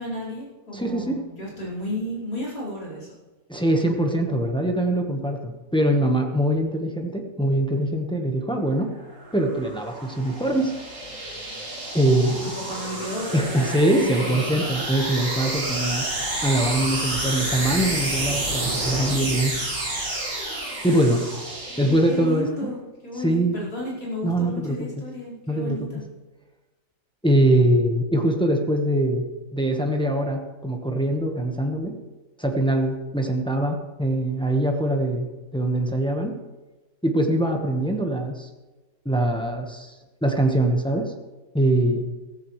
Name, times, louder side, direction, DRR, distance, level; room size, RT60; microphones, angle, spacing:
voice 1, 0.0-3.1 12.3-14.5 21.7-26.1, left 1 dB, 80° left, -6 dB, 5.5 m, -33 dB
voice 2, 0.7-1.2 3.5-8.9 9.3-10.7 11.9-12.5 13.3-16.1 16.4-19.6 20.8-21.3 21.8-22.5 23.2-23.7 24.2-24.8 25.5-25.9 27.2-29.2 29.5-31.9 32.4-36.4 37.0-38.5 39.0-39.9 40.2-41.1 41.5-42.1, right 1 dB, 5° left, 2 dB, 1.1 m, -23 dB
sound 1, 9.0-22.4, right 1 dB, 55° right, 3.3 m, -30 dB
16.0 x 14.0 x 3.3 m, 1.2 s
omnidirectional pair, 1.7 m